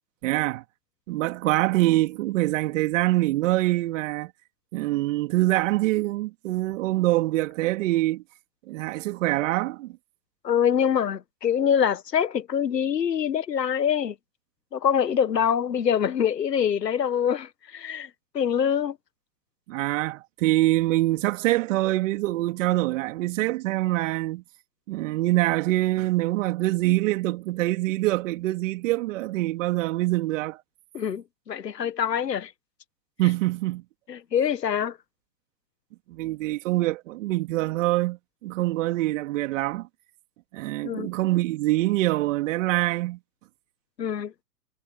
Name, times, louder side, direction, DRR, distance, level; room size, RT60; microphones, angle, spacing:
voice 1, 0.2-0.6 1.1-4.3 4.7-8.2 8.7-10.0 19.7-24.4 24.9-30.6 33.2-33.8 36.1-39.9 40.5-43.2, right 17 dB, 50° right, 3.6 m, -25 dB
voice 2, 10.4-14.1 14.7-18.1 18.3-18.9 30.9-32.5 34.1-35.0 40.8-41.1 44.0-44.3, left 8 dB, 85° left, 1.6 m, -25 dB
hypercardioid pair, 120°, 48 cm